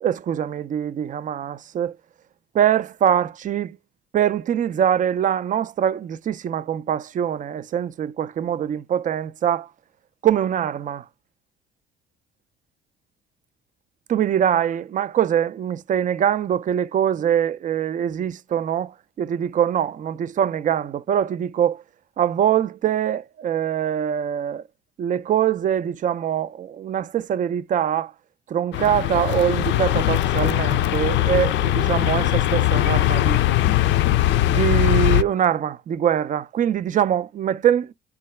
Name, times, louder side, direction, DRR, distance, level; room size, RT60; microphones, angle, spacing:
voice 1, 0.0-2.0 2.5-3.8 4.1-9.7 10.2-11.1 14.1-21.8 22.2-24.6 25.0-28.1 28.5-33.4 34.5-37.9, right 9 dB, 40° right, 0.4 m, -23 dB
sound 1, 28.7-35.2, left 14 dB, 65° left, 0.4 m, -20 dB
3.8 x 2.3 x 3.2 m
supercardioid pair, 75°, 21 cm